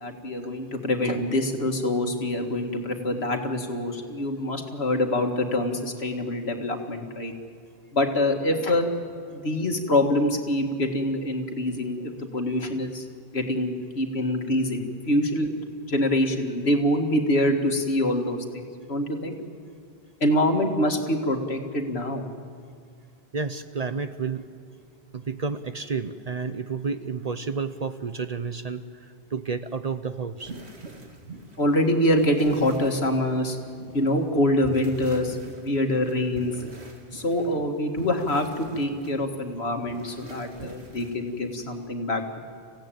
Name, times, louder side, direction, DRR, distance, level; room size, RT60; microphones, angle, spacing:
voice 1, 0.0-7.3 7.9-8.9 9.3-13.0 13.3-15.5 15.9-18.6 18.9-19.3 20.2-22.3 31.6-33.6 33.9-36.5 37.1-42.4, left 1 dB, 75° left, 4 dB, 2.1 m, -25 dB
voice 2, 23.3-24.4 25.1-30.5, right 5 dB, 40° right, 10 dB, 0.7 m, -31 dB
sound 1, 30.4-41.8, right 2 dB, 85° right, 2.4 m, -44 dB
26.0 x 16.5 x 9.0 m, 2.2 s
omnidirectional pair, 1.1 m